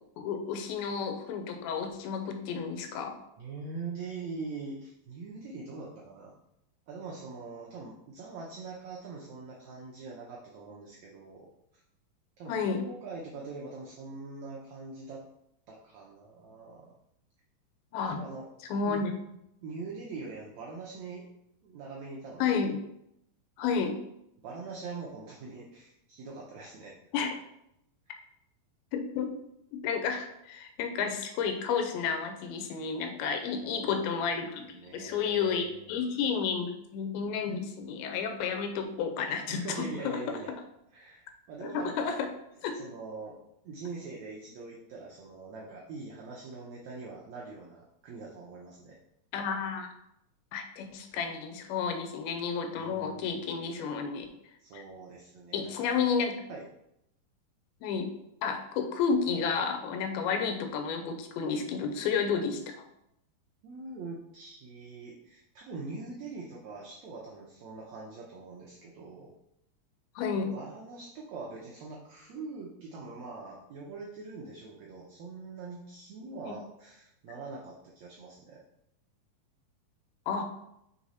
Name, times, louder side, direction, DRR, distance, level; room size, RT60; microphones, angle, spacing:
voice 1, 0.2-3.2 12.5-12.8 17.9-18.2 18.7-19.1 22.4-22.8 23.6-24.0 27.1-27.3 28.9-29.3 29.7-40.4 41.6-42.3 42.6-42.8 49.3-49.9 50.5-54.3 54.7-54.8 55.5-56.4 57.8-58.1 58.4-62.8 70.2-70.5 76.4-76.5 80.3-80.4, left 6 dB, 90° left, 6 dB, 2.6 m, -31 dB
voice 2, 3.4-6.3 6.9-11.5 12.4-15.2 15.7-16.9 18.1-18.5 18.8-19.0 19.6-21.3 21.6-22.6 24.4-26.9 33.6-34.2 34.6-36.0 39.5-40.5 40.9-42.2 42.7-43.4 43.6-49.0 52.7-53.5 54.6-55.9 56.5-56.7 63.6-69.3 70.3-78.6, right 4 dB, 85° right, -3 dB, 1.5 m, -43 dB
6.2 x 3.8 x 4.1 m, 0.79 s
omnidirectional pair, 4.3 m